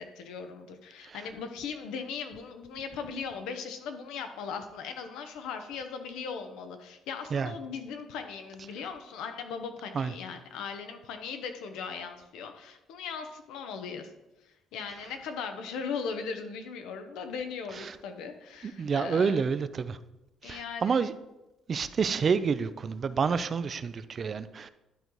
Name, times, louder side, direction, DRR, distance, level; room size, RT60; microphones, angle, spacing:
voice 1, 0.0-14.1 14.4-19.5 20.4-21.0, left 6 dB, 90° left, 7 dB, 0.9 m, -38 dB
voice 2, 18.8-20.0 20.5-21.1 21.7-24.7, right 5 dB, 40° right, 13 dB, 0.4 m, -28 dB
11.5 x 3.9 x 4.7 m, 0.97 s
cardioid pair, 110°, 0 cm